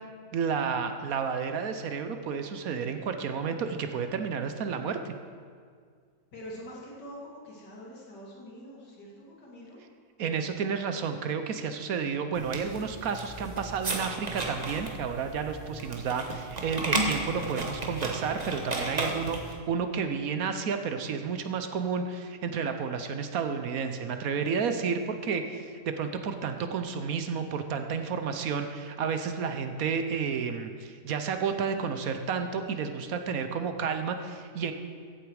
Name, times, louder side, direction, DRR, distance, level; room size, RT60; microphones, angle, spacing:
voice 1, 0.3-5.1 10.2-34.7, right 6 dB, 65° right, 8 dB, 1.1 m, -31 dB
voice 2, 6.3-9.8, equal, 90° left, -4 dB, 3.2 m, -45 dB
sound 1, 12.3-19.5, right 2 dB, 25° right, 1.2 m, -34 dB
15.0 x 8.3 x 4.8 m, 2.1 s
omnidirectional pair, 1.8 m